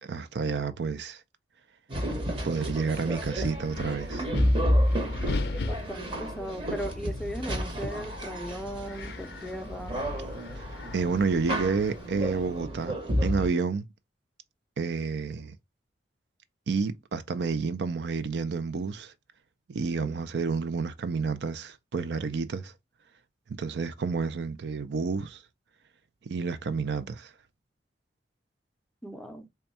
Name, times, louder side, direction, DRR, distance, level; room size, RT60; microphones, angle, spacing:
voice 1, 0.0-1.2 2.4-4.2 10.9-13.0 13.2-13.9 14.8-15.5 16.7-19.1 19.7-22.7 23.5-25.4 26.3-27.3, right 5 dB, 70° right, 0.4 m, -30 dB
sound 1, 1.9-13.5, equal, 30° right, 0.8 m, -31 dB
Wind, 3.1-12.6, left 3 dB, 60° left, 0.4 m, -39 dB
voice 2, 5.7-10.1 19.9-20.2 29.0-29.5, equal, 5° left, 0.5 m, -38 dB
3.4 x 2.3 x 4.1 m
head